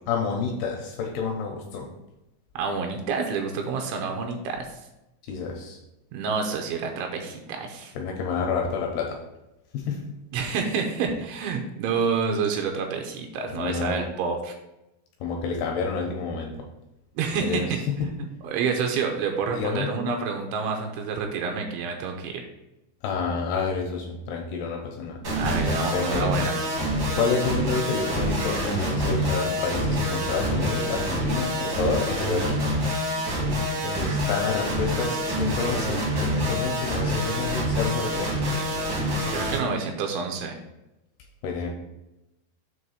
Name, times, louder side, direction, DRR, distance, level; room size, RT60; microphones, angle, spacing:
voice 1, 0.1-1.9 5.2-5.8 8.0-9.2 9.7-10.1 13.5-14.1 15.2-16.5 17.4-18.1 19.5-20.0 23.0-25.2 25.9-26.3 27.2-32.8 33.8-38.4 41.4-41.7, left 5 dB, 80° left, 1 dB, 2.3 m, -29 dB
voice 2, 2.6-4.7 6.1-7.9 10.3-14.5 17.2-22.4 25.2-26.6 39.3-40.6, right 5 dB, 80° right, 3 dB, 3.0 m, -28 dB
sound 1, 25.2-39.6, equal, 65° right, 1.1 m, -26 dB
7.7 x 3.1 x 5.6 m, 0.94 s
omnidirectional pair, 5.6 m